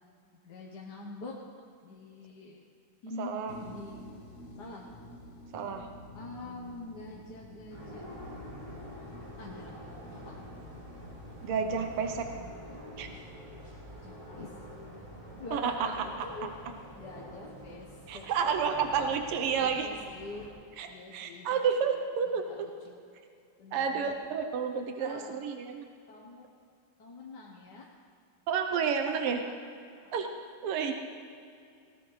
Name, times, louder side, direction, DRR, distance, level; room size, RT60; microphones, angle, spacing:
voice 1, 0.3-1.4 1.8-2.6 3.0-3.3 3.6-4.1 4.5-4.9 6.1-8.1 9.4-9.8 10.2-10.4 14.0-14.6 15.4-18.3 19.0-20.5 20.8-23.0 23.6-24.1 25.0-25.4 26.1-26.5 27.0-27.9 29.2-29.5 30.0-30.9, left 3 dB, 55° left, -2 dB, 1.6 m, -46 dB
voice 2, 3.2-3.5 5.5-5.9 11.4-12.3 13.0-13.1 15.5-15.9 18.1-19.9 20.8-20.9 21.1-22.4 23.7-25.8 28.5-29.4 30.1-30.3 30.6-30.9, right 6 dB, 90° right, 5 dB, 1.8 m, -30 dB
sound 1, 3.5-12.4, left 1 dB, 35° left, 1.4 m, -49 dB
sound 2, 7.7-20.5, equal, 15° right, 4.0 m, -47 dB
19.0 x 18.0 x 3.3 m, 2.4 s
omnidirectional pair, 2.4 m